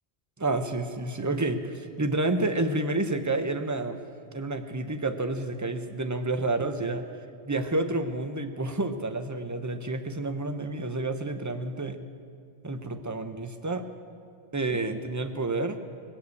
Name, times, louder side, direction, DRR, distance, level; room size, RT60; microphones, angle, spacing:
voice 1, 0.4-4.0 4.3-7.0 7.5-12.0 12.6-13.8 14.5-15.8, right 2 dB, 20° right, 8 dB, 0.6 m, -29 dB
19.0 x 8.1 x 8.4 m, 2.3 s
omnidirectional pair, 1.1 m